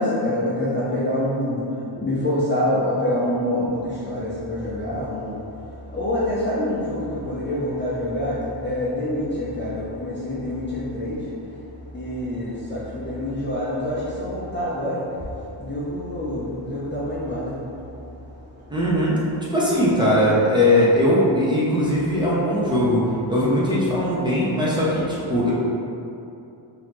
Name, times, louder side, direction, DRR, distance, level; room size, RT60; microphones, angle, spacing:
voice 1, 0.0-1.6 2.0-11.3 11.9-15.2 15.5-17.9, left 1 dB, 25° left, -9 dB, 0.6 m, -26 dB
voice 2, 18.7-19.2 19.5-23.0 23.3-25.5, left 1 dB, 10° right, -8 dB, 0.8 m, -20 dB
3.9 x 2.9 x 3.1 m, 2.7 s
cardioid pair, 100°, 50 cm